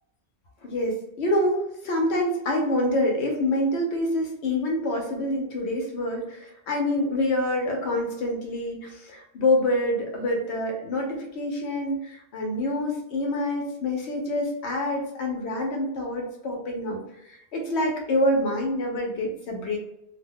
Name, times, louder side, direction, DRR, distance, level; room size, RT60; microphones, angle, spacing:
voice 1, 0.6-17.0 17.3-19.8, left 1 dB, 85° left, 1 dB, 1.0 m, -26 dB
2.4 x 2.1 x 3.5 m, 0.80 s
omnidirectional pair, 1.1 m